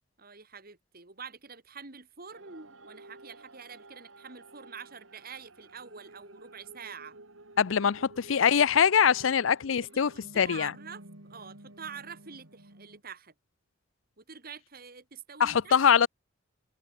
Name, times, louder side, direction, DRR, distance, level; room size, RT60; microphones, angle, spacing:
voice 1, 0.2-7.2 9.3-9.5 9.8-13.3 14.2-15.7, right 6 dB, 50° right, 2.5 m, -46 dB
sound 1, 2.3-13.0, right 2 dB, 90° right, 4.7 m, -53 dB
voice 2, 7.6-10.7 15.4-16.1, left 7 dB, 80° left, 0.5 m, -23 dB
head